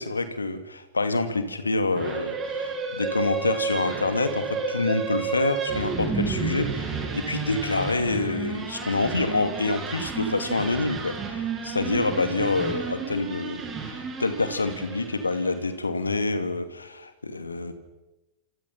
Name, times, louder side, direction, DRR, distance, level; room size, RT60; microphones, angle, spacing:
voice 1, 0.0-17.7, left 3 dB, 80° left, 9 dB, 2.6 m, -27 dB
sound 1, 1.9-15.6, right 5 dB, 20° right, 5.9 m, -31 dB
28.0 x 27.5 x 5.9 m, 0.99 s
figure-of-eight pair, 90°, 0 cm